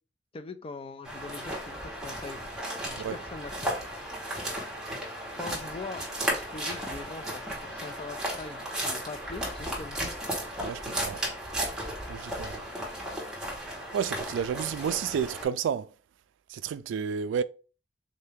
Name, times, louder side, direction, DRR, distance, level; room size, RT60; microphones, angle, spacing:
voice 1, 0.3-2.4 2.8-3.7 5.3-10.0, left 3 dB, 30° left, 0.4 m, -42 dB
sound 1, 1.0-15.5, right 1 dB, 5° right, 1.2 m, -35 dB
voice 2, 10.6-11.2 12.1-12.6 13.9-15.9 16.5-17.4, right 7 dB, 85° right, 0.3 m, -31 dB
3.8 x 2.7 x 3.4 m
head